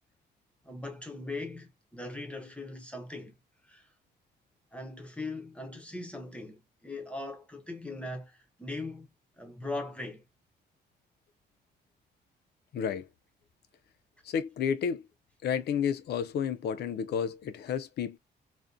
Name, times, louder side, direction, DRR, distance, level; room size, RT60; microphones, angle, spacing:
voice 1, 0.6-3.4 3.7-3.9 4.7-9.1 9.4-10.2, left 2 dB, 5° left, 0.6 m, -40 dB
voice 2, 12.7-13.1 14.2-15.1 15.4-18.2, left 7 dB, 65° left, 0.4 m, -31 dB
2.5 x 2.1 x 2.4 m
cardioid pair, 145°, 18 cm